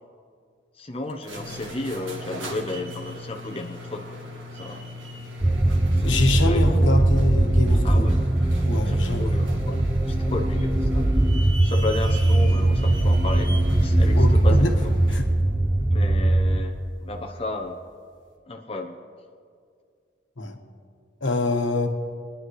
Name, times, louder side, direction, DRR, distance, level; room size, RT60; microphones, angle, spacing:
voice 1, 0.8-4.2 4.5-4.9 6.0-7.0 7.8-8.2 8.9-11.1 11.6-13.5 13.8-14.9 15.9-16.7 17.0-17.8 18.5-19.0, left 2 dB, 30° left, 2 dB, 0.8 m, -33 dB
sound 1, 1.1-15.3, left 1 dB, 90° right, 1.9 m, -38 dB
sound 2, 5.4-16.6, right 1 dB, 10° right, 0.4 m, -20 dB
voice 2, 6.0-8.1 8.6-9.4 14.2-14.8 15.1-15.3 15.8-15.9 20.4-20.6 21.2-21.9, left 2 dB, 85° left, 3 dB, 1.3 m, -25 dB
28.0 x 10.0 x 3.2 m, 2.2 s
head